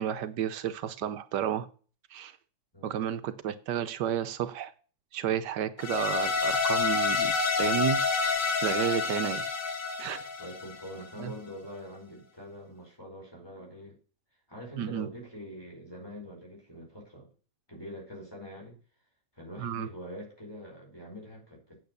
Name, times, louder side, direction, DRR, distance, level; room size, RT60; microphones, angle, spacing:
voice 1, 0.0-1.7 2.1-2.4 2.8-4.7 5.1-7.3 7.6-9.4 10.0-10.2 11.2-11.3 14.8-15.1 19.6-19.9, right 10 dB, 85° right, 12 dB, 1.3 m, -32 dB
sound 1, 5.8-11.0, left 5 dB, 85° left, 2.0 m, -28 dB
voice 2, 10.4-14.0 14.5-17.3 17.7-18.8 19.3-21.8, equal, 15° left, -1 dB, 4.9 m, -44 dB
8.8 x 7.1 x 6.7 m, 0.39 s
omnidirectional pair, 1.8 m